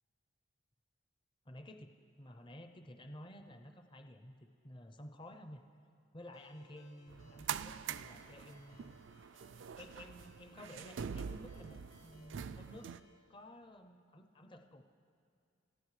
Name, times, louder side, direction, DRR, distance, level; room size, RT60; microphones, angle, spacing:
voice 1, 1.4-5.6 6.1-9.0 9.8-12.9 13.3-14.8, left 1 dB, 25° left, 6 dB, 0.6 m, -53 dB
Ringtone, 6.3-13.2, left 1 dB, 90° left, 2.2 m, -65 dB
sound 1, 7.1-13.0, right 7 dB, 60° right, 0.3 m, -44 dB
28.0 x 14.0 x 3.2 m, 2.4 s
head